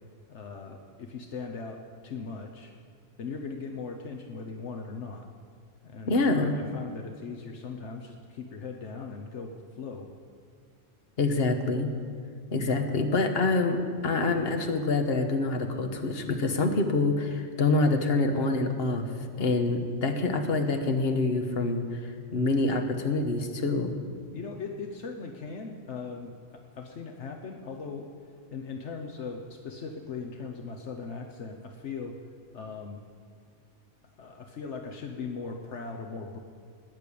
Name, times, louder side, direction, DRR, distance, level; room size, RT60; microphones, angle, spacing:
voice 1, 0.3-2.7 3.2-5.2 5.8-10.1 24.3-28.0 28.5-32.2 32.5-33.0 34.2-36.4, left 4 dB, 70° left, 3 dB, 1.2 m, -39 dB
voice 2, 6.1-6.6 11.2-11.9 12.5-19.1 19.4-22.0 22.3-23.9, left 3 dB, 55° left, 5 dB, 1.4 m, -26 dB
19.5 x 6.8 x 8.5 m, 2.2 s
omnidirectional pair, 1.3 m